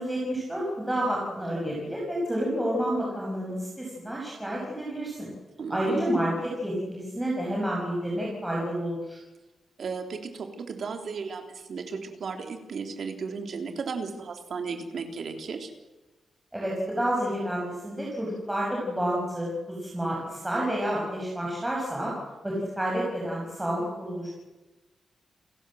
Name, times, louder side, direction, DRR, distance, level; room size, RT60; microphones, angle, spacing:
voice 1, 0.0-5.3 5.7-9.2 16.5-22.1 22.4-24.3, equal, 10° right, -4 dB, 6.7 m, -29 dB
voice 2, 5.6-6.0 9.8-15.7, right 5 dB, 60° right, 5 dB, 3.4 m, -35 dB
30.0 x 16.5 x 7.9 m, 1.1 s
wide cardioid pair, 140°, 0 cm